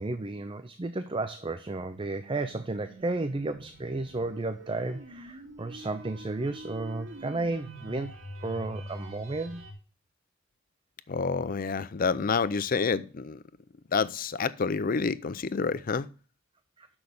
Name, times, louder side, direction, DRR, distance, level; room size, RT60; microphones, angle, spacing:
voice 1, 0.0-8.2 8.4-9.6 16.8-16.9, right 2 dB, 25° right, 0.5 m, -33 dB
sound 1, 1.6-9.7, equal, 85° right, 2.5 m, -46 dB
voice 2, 11.1-13.4 13.9-16.1, left 5 dB, 45° left, 0.5 m, -28 dB
6.4 x 6.1 x 6.9 m
head